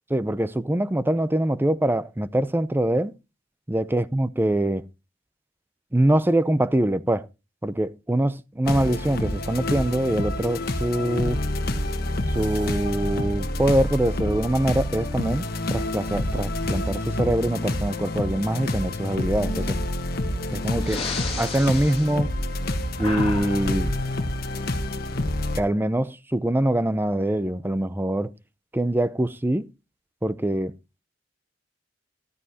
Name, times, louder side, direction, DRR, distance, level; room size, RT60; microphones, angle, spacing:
voice 1, 0.1-3.1 3.7-4.9 5.9-7.3 7.6-11.4 12.3-19.8 20.5-21.1 21.4-22.3 23.0-23.9 25.6-28.3 28.7-29.7 30.2-30.7, right 1 dB, 10° right, 0.5 m, -24 dB
sound 1, 8.6-25.6, left 1 dB, 55° left, 1.3 m, -28 dB
sound 2, 11.6-23.2, right 1 dB, 75° right, 1.5 m, -36 dB
Breathing, 20.7-22.7 23.0-24.1, left 3 dB, 30° left, 2.2 m, -32 dB
14.0 x 12.5 x 2.8 m
head